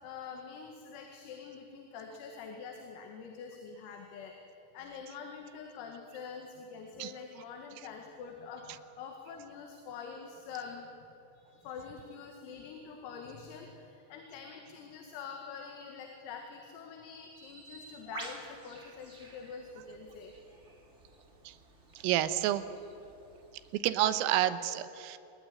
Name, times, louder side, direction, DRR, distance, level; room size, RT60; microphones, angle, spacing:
voice 1, 0.0-4.3 4.7-10.9 11.3-20.3, left 6 dB, 85° left, 3 dB, 4.6 m, -45 dB
Bird, 17.3-23.8, right 2 dB, 30° right, 1.3 m, -51 dB
voice 2, 22.0-22.6 23.7-25.2, right 13 dB, 85° right, 13 dB, 3.6 m, -29 dB
27.5 x 20.5 x 9.7 m, 3.0 s
omnidirectional pair, 5.9 m